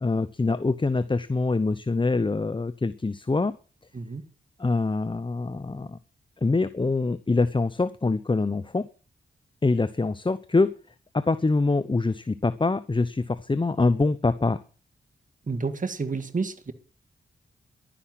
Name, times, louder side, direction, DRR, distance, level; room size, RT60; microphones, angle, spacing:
voice 1, 0.0-3.5 4.6-6.0 6.4-8.9 9.6-10.7 11.1-14.6, left 3 dB, 25° left, 14 dB, 0.9 m, -24 dB
voice 2, 15.5-16.7, right 4 dB, 40° right, 9 dB, 1.9 m, -30 dB
11.5 x 10.5 x 7.6 m, 0.38 s
cardioid pair, 60°, 20 cm